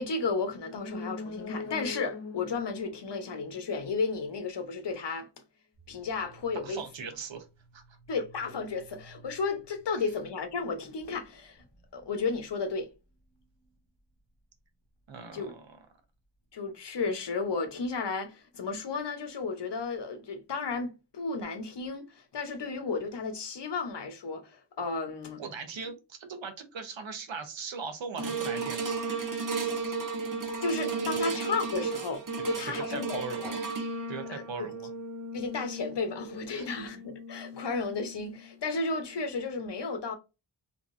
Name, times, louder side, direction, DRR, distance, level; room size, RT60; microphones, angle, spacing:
voice 1, 0.0-5.3 5.9-6.8 8.1-11.6 11.9-12.9 15.3-15.5 16.5-25.4 30.6-33.5 34.3-34.7 35.3-40.1, left 4 dB, 65° left, 0.9 m, -33 dB
sound 1, 0.6-4.3 4.6-4.7, left 4 dB, 35° left, 0.5 m, -41 dB
sound 2, 5.7-17.0, right 2 dB, 10° left, 1.5 m, -59 dB
voice 2, 6.6-7.5 7.7-8.0 9.9-10.1 15.1-15.8 25.4-28.9 29.7-29.9 30.9-31.3 32.9-33.6 34.1-34.9 36.5-36.7, right 5 dB, 85° right, 0.9 m, -40 dB
sound 3, 28.2-38.6 39.1-39.2, right 4 dB, 45° right, 0.8 m, -35 dB
3.6 x 2.9 x 2.5 m
wide cardioid pair, 75°, 44 cm